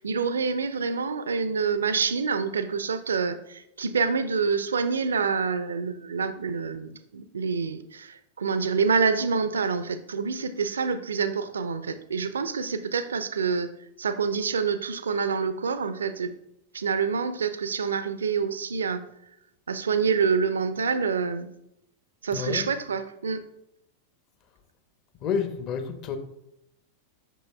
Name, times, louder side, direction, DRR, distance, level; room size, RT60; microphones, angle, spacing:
voice 1, 0.0-13.7 14.0-16.3 16.7-19.0 19.7-21.5 22.2-23.4, right 5 dB, 70° right, 0.4 m, -27 dB
voice 2, 22.3-22.7 25.2-26.2, left 6 dB, 35° left, 0.8 m, -29 dB
8.1 x 6.2 x 2.2 m
figure-of-eight pair, 90°, 0 cm